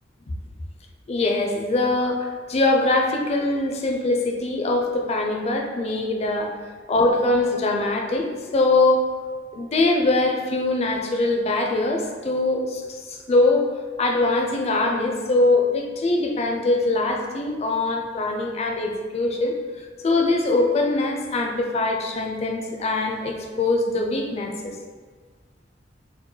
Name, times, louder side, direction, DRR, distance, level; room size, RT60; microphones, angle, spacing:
voice 1, 1.1-6.5 6.9-9.1 9.5-12.8 13.1-13.7 14.0-24.8, left 2 dB, 35° left, 2 dB, 0.4 m, -22 dB
4.4 x 2.1 x 3.1 m, 1.5 s
head